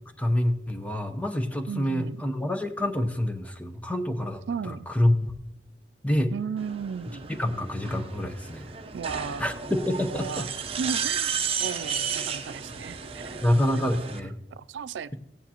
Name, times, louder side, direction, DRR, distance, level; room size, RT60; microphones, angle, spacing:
voice 1, 0.2-5.3 6.0-6.3 7.4-8.7 9.4-10.5 13.4-14.4, left 1 dB, 10° left, 7 dB, 0.7 m, -27 dB
voice 2, 1.7-2.3 4.5-4.9 6.3-7.3 8.9-9.4 10.1-10.5 10.8-13.4 13.7-14.1 14.5-15.1, right 6 dB, 85° right, 17 dB, 0.3 m, -35 dB
sound 1, 6.6-14.2, right 7 dB, 35° right, 0.7 m, -33 dB
16.0 x 9.8 x 2.9 m, 0.86 s
head